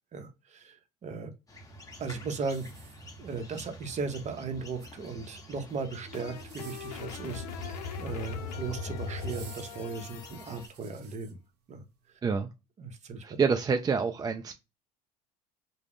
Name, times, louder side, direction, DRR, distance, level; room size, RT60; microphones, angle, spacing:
voice 1, 0.1-1.3 2.0-2.9 3.2-11.4 11.7-11.8 12.8-13.2, right 4 dB, 35° right, 0.7 m, -37 dB
sound 1, 1.5-10.7, equal, 15° left, 0.8 m, -49 dB
sound 2, 2.5-3.5 4.6-5.3 6.3-7.1 8.2-8.6 9.2-11.3 11.9-12.0, right 7 dB, 90° right, 0.6 m, -54 dB
sound 3, 5.7-10.7, left 4 dB, 90° left, 0.5 m, -39 dB
voice 2, 12.2-12.5 13.2-14.5, right 5 dB, 20° right, 0.3 m, -27 dB
2.3 x 2.1 x 3.4 m
hypercardioid pair, 75°, 20 cm